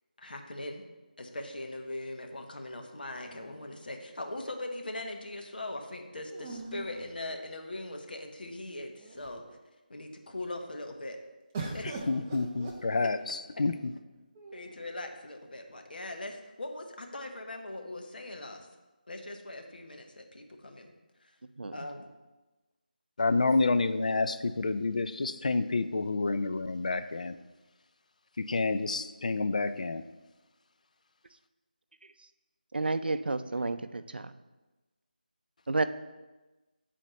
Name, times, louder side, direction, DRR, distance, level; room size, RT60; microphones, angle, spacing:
voice 1, 0.2-0.8 1.2-9.4 9.9-11.2 11.7-11.9 14.5-18.7 19.1-20.9 21.2-21.3 21.7-22.1, left 2 dB, 70° left, 3 dB, 1.0 m, -40 dB
sound 1, 3.2-4.3 6.3-7.8 8.6-8.7 9.0-9.6 11.5-13.4 14.3-15.0, right 3 dB, 15° right, 0.5 m, -43 dB
voice 2, 11.8-13.7 23.2-27.4 28.4-30.0, left 3 dB, 50° left, 10 dB, 0.4 m, -29 dB
voice 3, 32.7-34.3 35.7-35.9, right 3 dB, 85° right, 12 dB, 0.4 m, -30 dB
8.9 x 4.2 x 3.1 m, 1.1 s
figure-of-eight pair, 170°, 5 cm